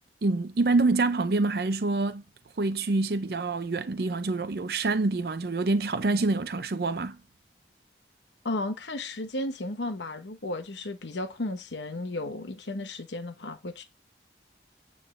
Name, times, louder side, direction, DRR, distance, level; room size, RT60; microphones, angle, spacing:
voice 1, 0.2-2.2 2.6-7.2, right 3 dB, 60° right, 0.5 m, -26 dB
voice 2, 8.4-13.8, left 2 dB, 85° left, 1.0 m, -34 dB
9.1 x 3.7 x 6.3 m
head